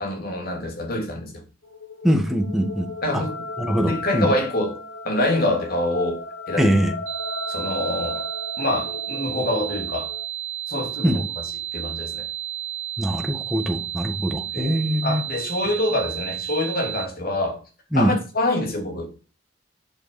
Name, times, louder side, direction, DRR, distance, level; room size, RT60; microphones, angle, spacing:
voice 1, 0.0-1.4 3.0-3.4 3.7-6.2 6.5-6.7 7.5-8.2 8.6-10.1 10.7-11.2 11.7-12.3 14.5-17.6 17.9-19.1, left 1 dB, 50° left, 3.0 m, -26 dB
sound 1, 1.6-10.3, left 2 dB, 80° left, 2.0 m, -35 dB
voice 2, 2.0-2.9 3.6-4.3 6.6-6.9 11.0-11.2 13.0-15.2 17.9-18.2, equal, ahead, 1.7 m, -22 dB
sound 2, 7.1-17.1, right 11 dB, 85° right, 1.6 m, -32 dB
11.5 x 5.2 x 7.0 m
head